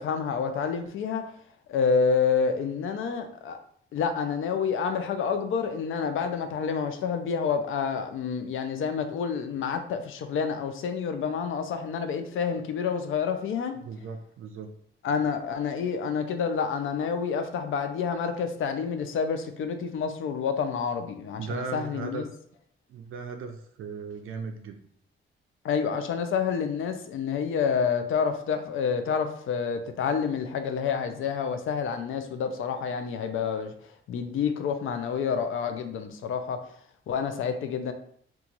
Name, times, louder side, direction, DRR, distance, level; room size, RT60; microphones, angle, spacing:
voice 1, 0.0-1.3 1.7-3.6 3.9-13.7 15.0-22.2 25.6-36.7 37.1-37.9, left 6 dB, 80° left, 7 dB, 0.5 m, -28 dB
voice 2, 13.8-14.7 21.4-22.2 22.9-24.8, right 5 dB, 85° right, 5 dB, 0.4 m, -37 dB
3.0 x 2.3 x 3.9 m, 0.62 s
wide cardioid pair, 155°, 21 cm